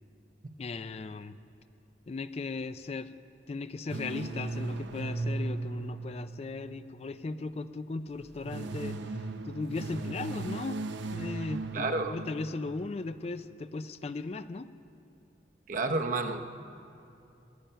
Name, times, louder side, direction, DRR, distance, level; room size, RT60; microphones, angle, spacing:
voice 1, 0.6-1.4 2.1-3.2 3.5-9.0 9.4-10.8 11.1-14.7, left 3 dB, 35° left, 12 dB, 0.3 m, -37 dB
sound 1, 3.9-7.3 8.2-13.0, right 3 dB, 75° right, 0.7 m, -37 dB
voice 2, 11.7-12.2 15.7-16.4, right 3 dB, 45° right, 6 dB, 0.8 m, -30 dB
19.5 x 10.0 x 5.6 m, 2.8 s
head